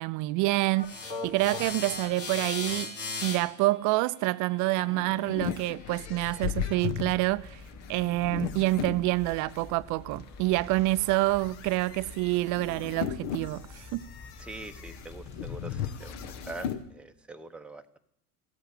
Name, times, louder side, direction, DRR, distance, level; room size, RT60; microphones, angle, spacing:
voice 1, 0.0-7.6 7.9-14.1, right 19 dB, 40° right, 0.5 m, -27 dB
sound 1, 0.7-5.9, left 4 dB, 75° left, 3.7 m, -38 dB
sound 2, 4.6-9.6 10.2-16.8, left 9 dB, 55° left, 1.2 m, -37 dB
sound 3, 7.0-16.7, left 3 dB, 35° left, 2.9 m, -48 dB
voice 2, 14.4-16.1 16.5-18.0, right 2 dB, ahead, 0.8 m, -43 dB
15.0 x 8.2 x 9.6 m
hypercardioid pair, 80°, 47 cm